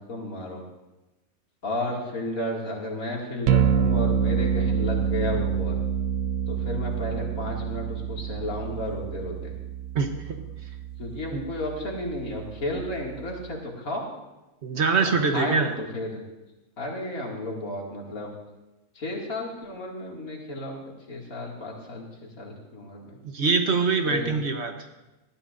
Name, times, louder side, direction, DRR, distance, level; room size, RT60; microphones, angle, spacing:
voice 1, 0.1-0.6 1.6-5.8 6.5-9.5 11.0-14.1 15.2-16.2 16.8-18.3 18.9-23.2 24.0-24.3, left 1 dB, 90° left, -2 dB, 2.7 m, -33 dB
sound 1, 3.5-13.5, right 8 dB, 75° right, 1.1 m, -27 dB
voice 2, 14.6-15.7 23.3-24.7, right 4 dB, 55° right, 5 dB, 1.3 m, -23 dB
18.5 x 13.0 x 2.6 m, 1.0 s
omnidirectional pair, 1.4 m